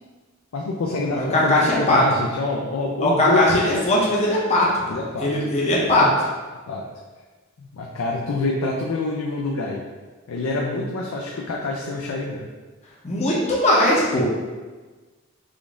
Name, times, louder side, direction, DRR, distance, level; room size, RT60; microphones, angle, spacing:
voice 1, 0.5-3.8 4.9-5.3 6.7-6.8 7.6-9.8 10.3-12.5, left 3 dB, 75° left, -1 dB, 0.4 m, -26 dB
voice 2, 1.1-2.0 3.0-6.3 13.0-14.2, left 1 dB, 35° left, -4 dB, 0.6 m, -19 dB
3.7 x 2.5 x 3.4 m, 1.3 s
head